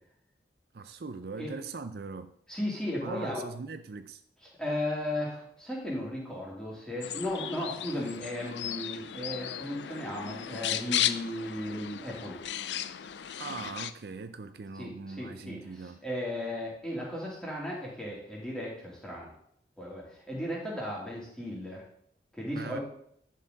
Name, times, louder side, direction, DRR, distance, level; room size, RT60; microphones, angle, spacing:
voice 1, 0.7-2.3 3.0-4.2 13.4-16.0 22.5-22.8, right 4 dB, 65° right, 0.5 m, -41 dB
voice 2, 2.5-3.4 4.6-12.4 14.7-19.3 19.8-21.8 22.3-22.8, left 1 dB, 5° left, 3.0 m, -35 dB
sound 1, 7.0-13.9, left 11 dB, 90° left, 0.5 m, -35 dB
11.0 x 6.7 x 4.0 m
head